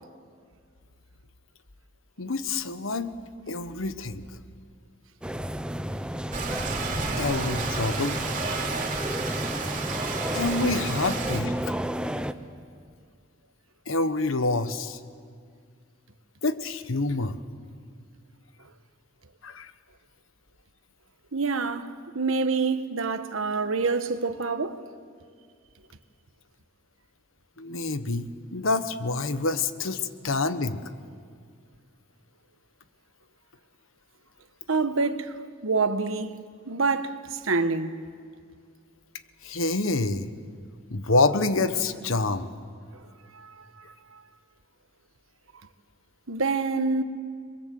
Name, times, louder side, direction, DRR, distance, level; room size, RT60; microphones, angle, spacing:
voice 1, 2.2-3.1 3.5-4.3 7.2-8.2 10.3-11.5 13.9-15.0 16.4-17.4 19.4-19.7 27.6-30.8 39.4-40.3 40.9-42.5, left 3 dB, 75° left, 1.2 m, -27 dB
sound 1, 5.2-12.3, equal, 5° right, 0.8 m, -32 dB
Rain, 6.3-11.4, right 3 dB, 40° right, 2.9 m, -31 dB
voice 2, 21.3-24.8 34.7-36.4 36.7-38.0 43.3-43.5 44.1-44.2 46.3-47.0, right 4 dB, 85° right, 1.3 m, -27 dB
30.0 x 22.5 x 7.8 m
head